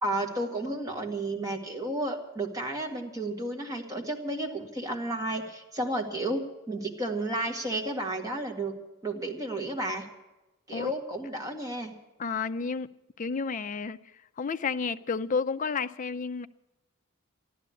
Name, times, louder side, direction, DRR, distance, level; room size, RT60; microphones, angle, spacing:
voice 1, 0.0-8.7 9.0-10.0 10.7-11.9, right 1 dB, 15° right, 1.7 m, -32 dB
voice 2, 12.2-12.9 13.2-16.5, left 5 dB, 35° left, 0.4 m, -31 dB
14.0 x 11.5 x 8.4 m
head